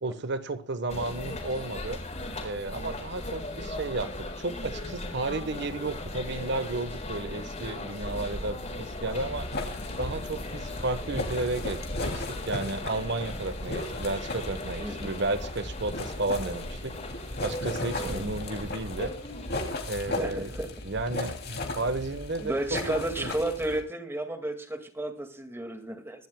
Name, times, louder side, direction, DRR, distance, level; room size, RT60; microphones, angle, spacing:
voice 1, 0.0-2.0 2.4-9.5 10.0-17.0 17.4-19.1 19.9-20.5 20.8-22.5 22.9-23.3, right 2 dB, 60° right, 11 dB, 1.2 m, -33 dB
sound 1, 0.9-19.5, left 1 dB, 35° left, 4.4 m, -37 dB
sound 2, 9.5-23.8, left 2 dB, 55° left, 2.8 m, -37 dB
voice 2, 14.8-15.1 18.0-18.3 20.2-20.7 22.4-26.3, right 1 dB, 10° right, 6 dB, 2.0 m, -32 dB
24.0 x 12.5 x 2.3 m, 0.35 s
head